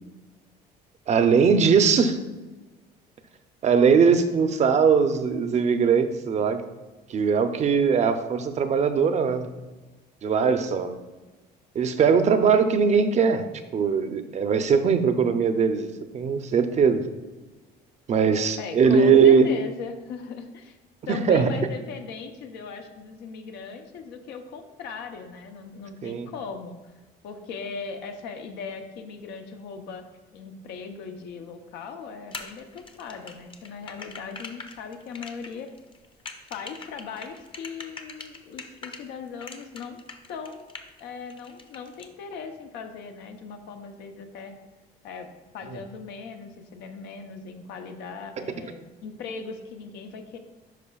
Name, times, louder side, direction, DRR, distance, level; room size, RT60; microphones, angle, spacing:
voice 1, 1.1-2.2 3.6-6.6 7.1-9.5 10.2-10.9 11.7-13.4 13.7-17.0 18.1-19.5 21.1-21.5 26.0-26.3, right 6 dB, 45° right, 8 dB, 0.6 m, -20 dB
voice 2, 18.6-20.8 21.1-26.9 27.2-30.0 30.3-35.7 36.5-40.0 40.3-40.7 41.0-44.5 45.0-45.3 45.5-50.4, left 5 dB, 85° left, 5 dB, 0.8 m, -39 dB
sound 1, 32.3-39.0 39.4-41.0 41.3-42.1, left 4 dB, 30° left, 0.7 m, -41 dB
11.0 x 4.6 x 2.3 m, 1.2 s
cardioid pair, 110°, 17 cm